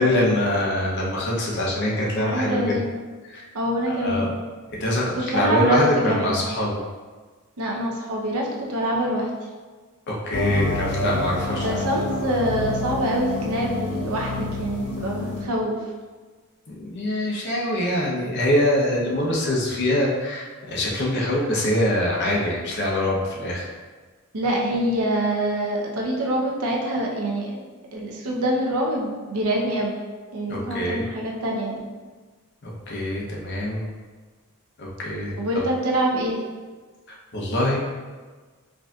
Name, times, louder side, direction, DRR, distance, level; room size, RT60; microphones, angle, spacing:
voice 1, 0.0-2.8 3.3-3.4 3.9-4.3 4.8-6.8 10.1-11.8 16.7-23.7 30.5-31.0 32.6-33.9 34.8-35.3 37.3-37.8, left 1 dB, 55° left, -4 dB, 0.8 m, -24 dB
voice 2, 2.2-3.0 3.5-4.3 5.3-5.8 6.1-6.4 7.6-9.3 11.6-15.7 24.3-27.5 27.9-29.9 30.3-31.8 35.4-36.4, right 1 dB, 90° right, -2 dB, 0.7 m, -25 dB
sound 1, 10.3-15.4, left 2 dB, 85° left, 0.8 m, -28 dB
4.8 x 2.6 x 2.4 m, 1.4 s
head